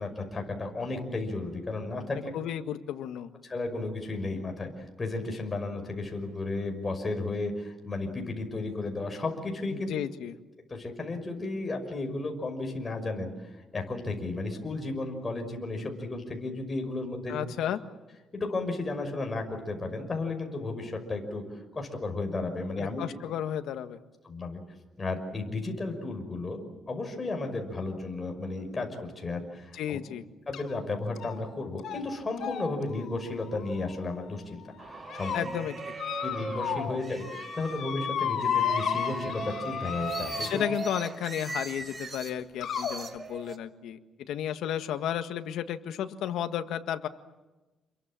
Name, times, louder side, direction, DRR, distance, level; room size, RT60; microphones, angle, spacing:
voice 1, 0.0-2.3 3.5-9.9 10.7-13.3 13.7-17.4 18.3-21.4 21.7-23.0 24.2-24.6 25.0-30.0 30.5-35.5 36.2-40.6, left 2 dB, 25° left, 3 dB, 5.8 m, -34 dB
voice 2, 2.3-3.3 9.7-10.4 17.3-17.8 22.8-24.0 29.7-30.2 35.3-35.7 40.4-44.0 44.3-47.1, left 10 dB, 85° left, 8 dB, 1.6 m, -33 dB
sound 1, 30.5-30.8 31.2-31.5 31.8-32.0 32.4-34.3 34.8-35.4 36.0-37.0 37.2-40.8 41.8-41.9 42.6-42.9, left 8 dB, 70° left, 4.9 m, -33 dB
sound 2, 34.8-37.8 38.4-42.3 42.7-43.6, right 3 dB, 30° right, 2.5 m, -39 dB
29.0 x 23.0 x 7.6 m, 1.1 s
cardioid pair, 115°, 0 cm